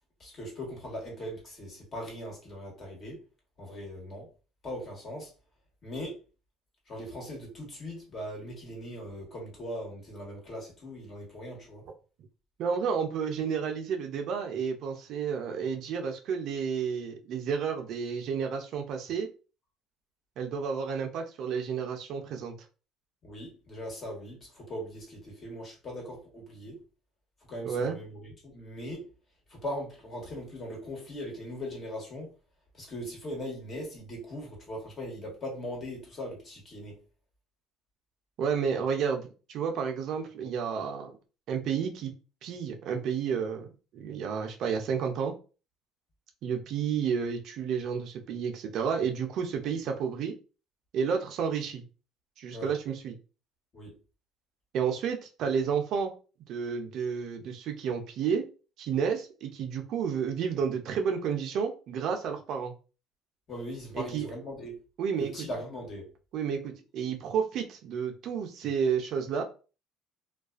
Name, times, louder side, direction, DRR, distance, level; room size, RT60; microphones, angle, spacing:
voice 1, 0.2-3.2 3.6-4.3 4.6-5.3 5.8-6.2 6.9-11.9 23.2-26.8 27.5-29.1 29.5-32.3 32.7-37.0 52.5-52.7 53.7-53.9 63.5-64.8 65.2-66.1, equal, 40° left, 1.2 m, -40 dB
voice 2, 12.6-19.3 20.4-22.5 27.6-28.0 38.4-41.1 41.5-42.1 42.4-43.7 43.9-45.3 46.4-50.3 50.9-51.8 52.4-53.2 54.7-56.1 56.5-58.4 58.8-62.7 63.9-64.3 65.0-65.3 66.3-69.4, right 6 dB, 60° right, 0.5 m, -31 dB
2.4 x 2.2 x 2.4 m
supercardioid pair, 100°, 0 cm